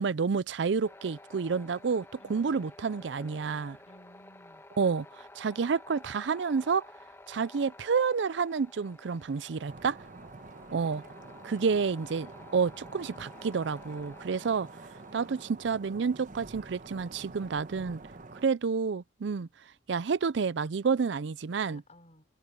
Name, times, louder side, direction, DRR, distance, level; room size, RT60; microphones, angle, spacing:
voice 1, 0.0-3.8 4.8-6.8 7.3-10.0 10.7-11.0 11.4-14.7 15.1-18.0 18.3-19.5 19.9-21.8, right 5 dB, 70° right, 0.5 m, -29 dB
sound 1, 0.8-15.4, left 2 dB, 15° left, 1.7 m, -52 dB
voice 2, 2.2-2.7 3.8-4.6 21.6-22.3, left 1 dB, 40° left, 6.0 m, -56 dB
sound 2, 9.7-18.5, right 3 dB, 45° right, 1.1 m, -48 dB
head